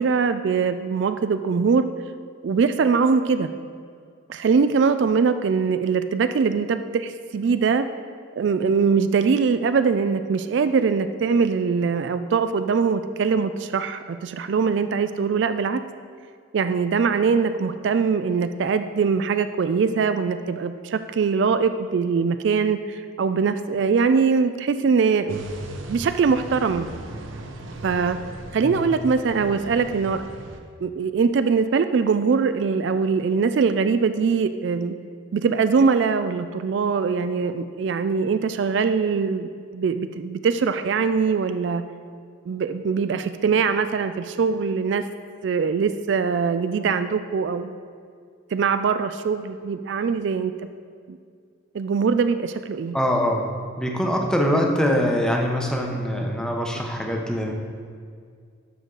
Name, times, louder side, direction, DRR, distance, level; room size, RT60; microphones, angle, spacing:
voice 1, 0.0-1.9 2.4-3.5 4.3-7.9 8.4-15.8 16.5-25.4 25.9-26.9 27.8-28.2 28.5-30.2 30.8-34.9 35.3-41.8 42.5-45.0 45.4-47.7 48.5-50.5 51.1-51.2 51.7-53.0, right 5 dB, 60° right, 10 dB, 0.3 m, -22 dB
sound 1, 25.3-30.6, right 2 dB, 85° right, 0.8 m, -37 dB
voice 2, 52.9-53.4 53.8-57.5, equal, 5° left, 1 dB, 0.9 m, -23 dB
11.5 x 6.3 x 3.9 m, 2.1 s
head